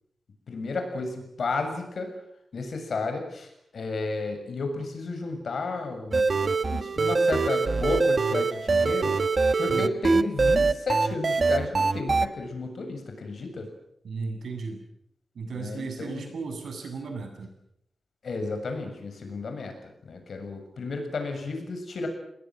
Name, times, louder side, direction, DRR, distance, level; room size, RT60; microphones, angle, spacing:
voice 1, 0.5-2.1 2.5-9.2 9.6-13.7 15.5-16.3 18.2-22.1, left 3 dB, 65° left, 6 dB, 7.2 m, -32 dB
sound 1, 6.1-12.3, right 4 dB, 40° right, 1.2 m, -23 dB
voice 2, 14.0-14.8 15.3-17.5, right 4 dB, 85° right, 5 dB, 7.8 m, -35 dB
30.0 x 20.5 x 7.8 m, 0.76 s
wide cardioid pair, 145°, 0 cm